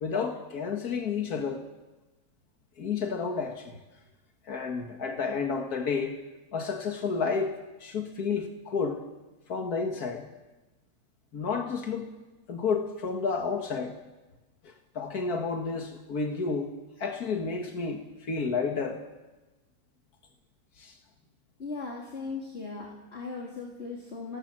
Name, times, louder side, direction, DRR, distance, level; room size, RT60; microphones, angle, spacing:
voice 1, 0.0-1.6 2.8-3.8 4.5-6.2 6.5-9.0 9.5-10.3 11.3-12.1 12.5-14.0 14.6-16.7 17.0-19.0 20.8-21.0, left 5 dB, 90° left, 4 dB, 2.1 m, -31 dB
voice 2, 21.6-24.4, left 4 dB, 45° left, -2 dB, 3.2 m, -38 dB
29.0 x 18.5 x 7.5 m, 1.1 s
omnidirectional pair, 1.6 m